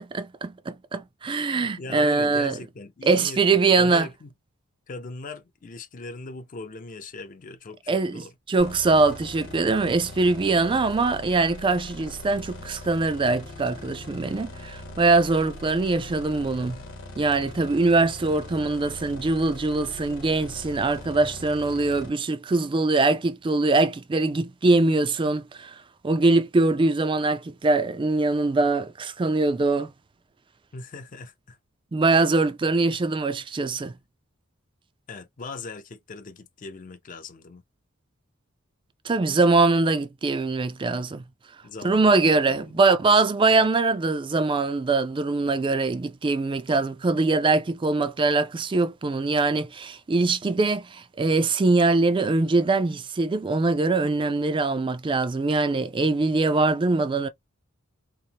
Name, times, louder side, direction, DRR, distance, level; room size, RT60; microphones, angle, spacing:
voice 1, 0.1-2.6 3.0-4.1 7.9-8.2 8.5-16.8 17.2-29.9 31.9-33.9 39.0-41.2 41.8-57.3, right 3 dB, 25° right, 0.3 m, -22 dB
voice 2, 1.2-4.3 4.9-8.3 30.7-31.6 35.1-37.6 41.6-42.8 43.2-43.3 43.5-43.7, left 3 dB, 40° left, 0.5 m, -40 dB
sound 1, 8.6-22.1, left 2 dB, 60° left, 1.1 m, -41 dB
3.1 x 2.0 x 2.7 m
head